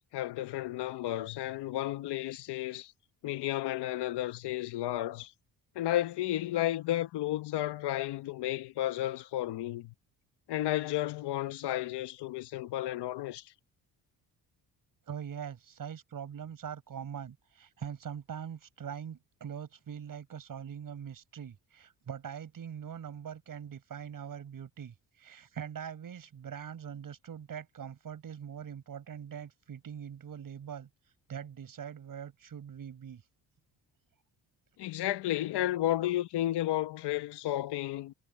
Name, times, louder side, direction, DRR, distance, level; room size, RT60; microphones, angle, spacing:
voice 1, 0.1-2.9 3.2-5.3 5.7-9.9 10.5-13.5 34.8-38.1, left 14 dB, 80° left, 1.2 m, -32 dB
voice 2, 15.1-30.9 31.3-33.2, right 8 dB, 55° right, 6.2 m, -42 dB
cardioid pair, 90°, 40 cm